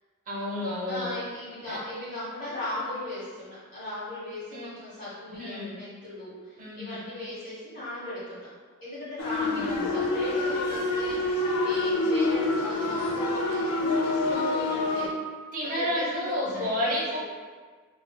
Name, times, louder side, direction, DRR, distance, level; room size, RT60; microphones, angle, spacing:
voice 1, 0.3-1.1 1.7-1.8 4.5-4.7 5.4-5.8 6.6-7.0 9.4-9.9 15.5-17.2, left 1 dB, 35° right, -5 dB, 0.8 m, -31 dB
voice 2, 0.9-8.5 8.8-15.1 15.6-17.2, left 1 dB, 35° left, -12 dB, 1.1 m, -37 dB
sound 1, 9.2-15.1, left 2 dB, 75° left, 0.5 m, -27 dB
4.7 x 2.6 x 2.2 m, 1.5 s
head